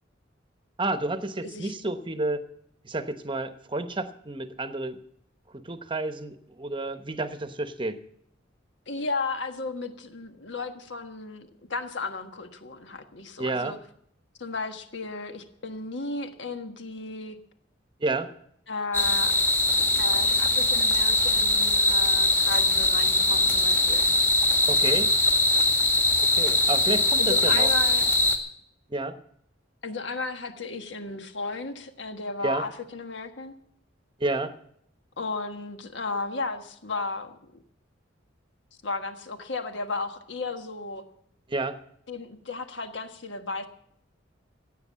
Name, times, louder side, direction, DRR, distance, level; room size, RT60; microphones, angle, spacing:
voice 1, 0.8-2.5 2.8-5.0 5.5-8.0 13.4-13.8 18.0-18.3 24.7-25.1 26.3-27.7 28.9-29.1 32.4-32.7 34.2-34.5 41.5-41.8, right 2 dB, 25° right, 10 dB, 1.0 m, -30 dB
voice 2, 1.4-1.7 8.9-13.8 14.4-17.4 18.7-19.3 20.0-24.1 27.2-28.1 29.8-33.5 35.2-37.4 38.8-41.1 42.1-43.7, left 3 dB, 65° left, 7 dB, 1.5 m, -34 dB
sound 1, 18.9-28.4, left 2 dB, 10° left, 1.7 m, -22 dB
15.5 x 9.0 x 7.5 m, 0.70 s
head